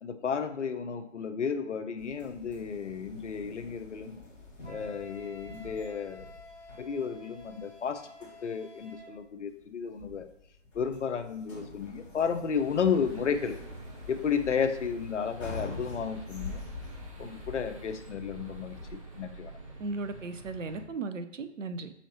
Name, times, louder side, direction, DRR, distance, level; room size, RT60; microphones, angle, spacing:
voice 1, 0.0-4.2 4.7-6.3 6.8-10.3 10.7-13.6 14.1-16.7 17.2-18.8 19.2-19.5, left 6 dB, 70° left, 9 dB, 0.6 m, -32 dB
sound 1, 2.0-18.9, left 2 dB, 25° left, 1.3 m, -46 dB
Wind instrument woodwind instrument, 4.6-9.2, left 2 dB, 70° right, 1.6 m, -50 dB
sound 2, 12.5-20.8, right 2 dB, 30° right, 0.5 m, -47 dB
voice 2, 19.8-21.9, right 3 dB, 85° right, 10 dB, 0.6 m, -36 dB
5.5 x 3.1 x 2.9 m, 0.82 s
figure-of-eight pair, 145°, 37 cm